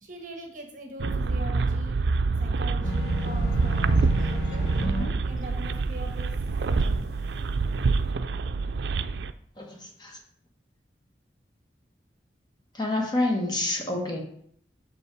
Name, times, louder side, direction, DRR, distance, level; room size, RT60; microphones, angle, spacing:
voice 1, 0.0-2.0 2.4-4.7 5.2-6.3 6.7-7.0, equal, 50° right, 2 dB, 1.4 m, -42 dB
sound 1, 1.0-9.3, right 4 dB, 80° right, 0.4 m, -26 dB
sound 2, 2.8-5.1, left 3 dB, 75° left, 1.4 m, -33 dB
voice 2, 9.6-10.2 12.7-14.2, left 2 dB, 25° left, 2 dB, 1.1 m, -28 dB
6.3 x 5.5 x 4.8 m, 0.65 s
head